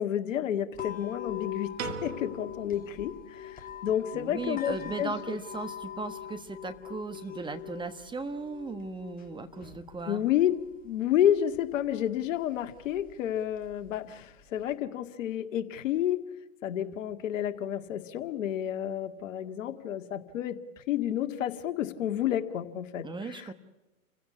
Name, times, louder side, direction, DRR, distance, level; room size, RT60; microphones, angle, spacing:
voice 1, 0.0-5.4 10.1-16.2 16.6-23.5, left 11 dB, 60° left, 9 dB, 2.0 m, -30 dB
sound 1, 0.7-14.7, left 10 dB, 20° left, 2.2 m, -44 dB
Piano, 1.8-4.0, right 5 dB, 70° right, 3.1 m, -41 dB
voice 2, 4.1-10.3 23.0-23.5, right 3 dB, 10° right, 9 dB, 1.2 m, -37 dB
29.5 x 16.5 x 8.4 m, 1.0 s
hypercardioid pair, 120°, 42 cm